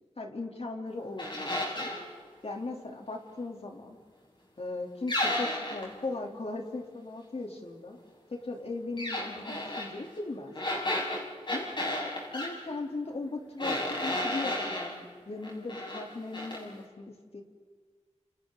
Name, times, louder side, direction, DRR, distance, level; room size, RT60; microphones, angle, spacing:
voice 1, 0.2-1.9 2.4-4.0 4.6-8.0 8.3-10.5 11.5-11.7 12.3-17.4, left 3 dB, 55° left, 1 dB, 3.5 m, -38 dB
sound 1, 1.2-2.0 5.1-5.9 9.0-9.9 10.5-12.5 13.6-14.9 15.4-16.0 16.3-16.6, left 1 dB, 40° left, 6.6 m, -32 dB
29.5 x 29.5 x 4.1 m, 1.6 s
wide cardioid pair, 70°, 12 cm